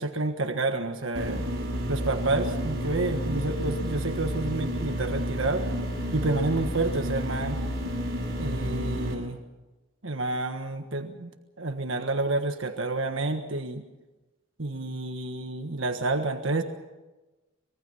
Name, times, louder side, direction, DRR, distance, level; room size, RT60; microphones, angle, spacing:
voice 1, 0.0-1.5 1.9-5.7 6.1-7.6 8.4-9.4 10.0-11.3 11.6-13.8 14.6-16.6, right 2 dB, 75° right, 5 dB, 1.5 m, -29 dB
sound 1, 1.1-9.1, equal, 50° right, 6.8 m, -30 dB
25.0 x 22.5 x 5.7 m, 1.1 s
head